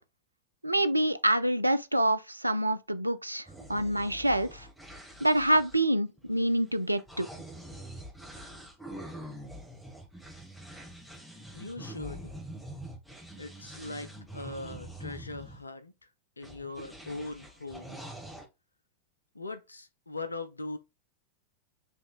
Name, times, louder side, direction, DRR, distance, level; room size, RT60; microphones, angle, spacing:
voice 1, 0.6-3.4 3.7-4.7 5.2-7.3, right 1 dB, 85° right, 0.4 m, -26 dB
sound 1, 3.5-15.6 16.4-18.4, right 1 dB, 5° left, 1.4 m, -45 dB
voice 2, 11.5-12.3 13.4-16.1 16.4-18.0 19.3-20.8, left 2 dB, 80° left, 0.5 m, -40 dB
6.9 x 3.1 x 2.3 m
figure-of-eight pair, 90°, 0 cm